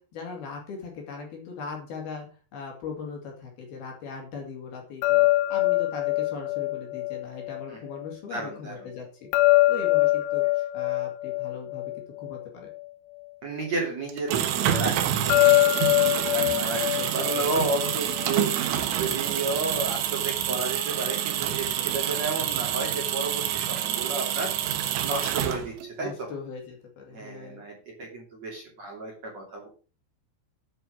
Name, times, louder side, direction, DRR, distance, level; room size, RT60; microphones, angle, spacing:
voice 1, 0.0-2.3 2.5-9.3 9.7-10.4 10.7-11.9 12.2-12.7 17.0-17.5 26.0-27.6, left 5 dB, 55° left, 1 dB, 4.0 m, -39 dB
sound 1, 5.0-8.1 9.3-12.8 15.3-18.4, left 19 dB, 80° left, 2.9 m, -24 dB
voice 2, 8.3-8.9 13.4-14.9 15.2-16.8 17.1-18.7 19.0-24.5 25.0-26.3 27.1-27.7 28.0-29.7, right 2 dB, 40° right, -1 dB, 3.2 m, -32 dB
sound 2, 14.1-25.9, right 11 dB, 75° right, 3.6 m, -28 dB
9.3 x 7.8 x 6.3 m, 0.38 s
omnidirectional pair, 5.8 m